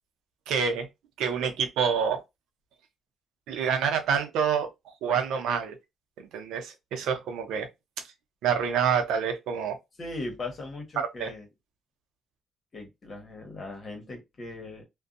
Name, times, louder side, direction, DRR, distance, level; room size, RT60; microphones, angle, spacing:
voice 1, 0.5-0.9 1.2-2.2 3.5-4.7 5.0-5.8 6.2-7.7 8.4-9.8 11.0-11.3, right 7 dB, 85° right, 0.6 m, -27 dB
voice 2, 10.0-11.5 12.7-14.8, left 2 dB, 40° left, 1.2 m, -38 dB
2.6 x 2.2 x 2.5 m
cardioid pair, 90°, 0 cm